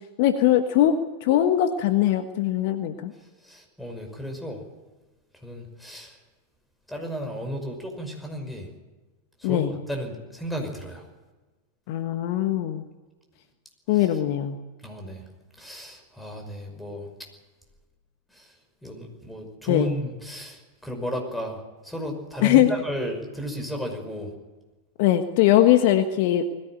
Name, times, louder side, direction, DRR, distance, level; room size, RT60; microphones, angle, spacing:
voice 1, 0.2-3.1 9.4-9.7 11.9-12.8 13.9-14.6 19.7-19.9 22.4-22.7 25.0-26.4, left 12 dB, 55° left, 8 dB, 1.3 m, -21 dB
voice 2, 3.4-4.6 5.4-6.1 6.9-8.7 9.4-11.0 14.0-14.1 14.8-15.2 15.6-17.1 18.4-18.5 18.8-21.6 21.8-24.3, equal, 5° left, 4 dB, 5.6 m, -34 dB
20.5 x 15.5 x 9.0 m, 1.2 s
figure-of-eight pair, 90°, 0 cm